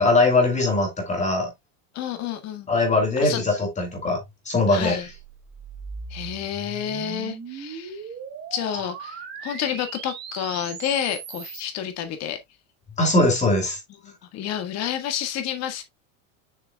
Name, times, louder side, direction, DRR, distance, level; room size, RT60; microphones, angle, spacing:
voice 1, 0.0-1.5 2.7-4.2 4.5-5.0 13.0-13.8, left 2 dB, 15° left, 2.6 m, -21 dB
voice 2, 1.9-2.7 3.2-3.4 4.7-5.1 6.1-8.0 8.5-9.2 9.4-12.4 14.0-15.8, left 10 dB, 40° left, 1.6 m, -29 dB
sound 1, 4.9-11.7, right 6 dB, 25° right, 1.3 m, -38 dB
7.0 x 6.0 x 2.2 m
supercardioid pair, 145°, 41 cm